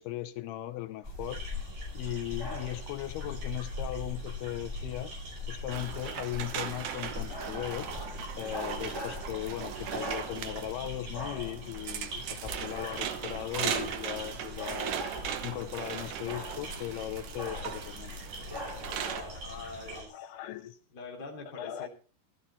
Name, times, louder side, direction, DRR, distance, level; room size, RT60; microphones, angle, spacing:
voice 1, 0.0-1.7 1.9-5.1 5.5-7.9 8.4-18.2 20.1-20.8 21.6-21.9, left 13 dB, 75° left, 2.6 m, -38 dB
sound 1, 1.0-20.0, left 2 dB, 10° right, 2.0 m, -41 dB
sound 2, 1.2-20.1, right 2 dB, 40° right, 6.0 m, -47 dB
sound 3, 5.7-19.2, right 9 dB, 70° right, 2.0 m, -38 dB
voice 2, 19.4-20.3 20.9-21.9, left 4 dB, 25° left, 3.0 m, -44 dB
13.5 x 13.0 x 4.1 m
omnidirectional pair, 5.0 m